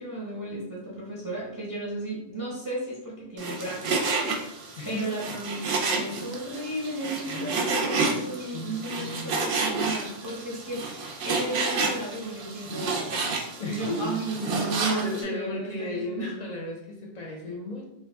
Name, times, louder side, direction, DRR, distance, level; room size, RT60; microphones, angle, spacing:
voice 1, 0.0-13.3 13.6-16.4, right 2 dB, 20° right, -5 dB, 0.6 m, -34 dB
Frying (food), 3.4-15.2, right 3 dB, 60° right, 0.7 m, -30 dB
voice 2, 4.8-5.1 7.2-9.4 13.6-14.1 14.4-17.9, left 2 dB, 45° left, 0 dB, 0.6 m, -36 dB
2.9 x 2.2 x 3.3 m, 0.83 s
omnidirectional pair, 1.2 m